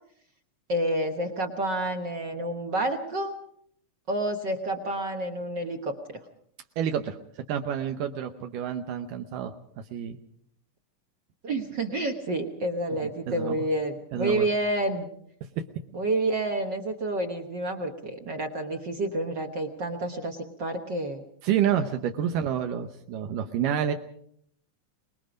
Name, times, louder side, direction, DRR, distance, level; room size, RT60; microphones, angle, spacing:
voice 1, 0.7-3.3 4.1-6.2 11.4-15.1 15.9-21.2, right 1 dB, 55° right, 4 dB, 1.3 m, -29 dB
voice 2, 6.8-7.2 7.5-9.5 9.9-10.2 13.0-13.6 14.1-14.5 21.4-23.9, right 9 dB, 80° right, 6 dB, 2.5 m, -28 dB
24.5 x 20.5 x 5.2 m, 0.68 s
omnidirectional pair, 3.8 m